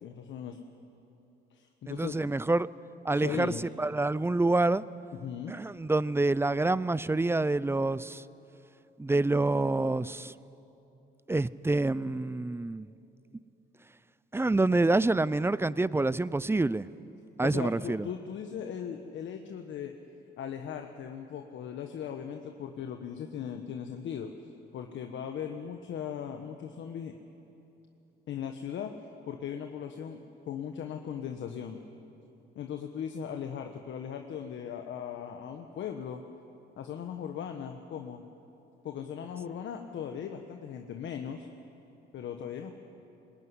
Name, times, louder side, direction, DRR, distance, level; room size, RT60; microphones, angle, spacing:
voice 1, 0.0-0.6 1.5-2.2 3.1-3.6 5.2-5.6 17.4-19.9 20.4-24.3 24.7-27.2 28.3-28.9 29.3-31.8 32.5-36.2 36.8-38.2 38.8-41.5 42.1-42.7, left 8 dB, 70° left, 1.3 m, -38 dB
voice 2, 1.9-2.7 3.0-4.8 5.5-8.2 9.0-10.3 11.3-12.9 14.3-16.9 17.4-18.1, right 2 dB, 10° right, 0.5 m, -27 dB
21.0 x 19.5 x 9.7 m
cardioid pair, 90°, 20 cm